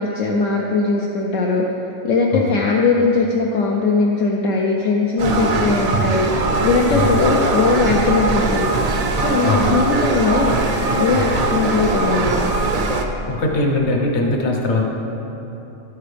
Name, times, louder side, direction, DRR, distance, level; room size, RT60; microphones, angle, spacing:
voice 1, 0.0-1.6 2.0-6.3 6.6-8.7 9.2-10.6 11.0-12.5, left 4 dB, 70° left, -1 dB, 1.0 m, -19 dB
sound 1, 5.2-13.1, right 3 dB, 55° right, 0.4 m, -20 dB
voice 2, 9.4-9.7 11.1-11.3 13.3-14.8, left 2 dB, 55° left, 1 dB, 1.3 m, -20 dB
10.0 x 9.5 x 3.4 m, 2.9 s
omnidirectional pair, 1.4 m